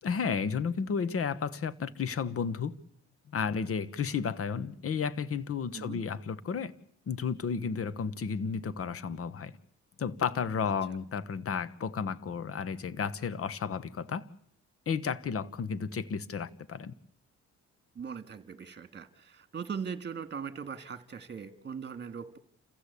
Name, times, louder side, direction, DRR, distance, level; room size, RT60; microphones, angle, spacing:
voice 1, 0.0-2.7 3.3-6.7 7.1-9.6 10.0-14.3 14.9-16.9, left 6 dB, 50° left, 1.3 m, -32 dB
voice 2, 18.0-22.4, right 6 dB, 35° right, 2.2 m, -40 dB
28.5 x 15.5 x 8.4 m
cardioid pair, 90°, 30 cm